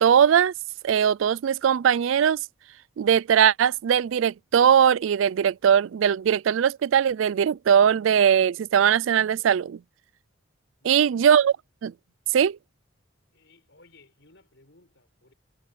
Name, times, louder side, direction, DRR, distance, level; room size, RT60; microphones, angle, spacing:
voice 1, 0.0-0.5 0.8-2.4 3.0-9.8 10.8-11.5 11.8-11.9 12.3-12.6, right 8 dB, 70° right, 0.3 m, -20 dB
voice 2, 10.8-11.4 13.3-15.3, left 2 dB, 60° left, 6.4 m, -58 dB
head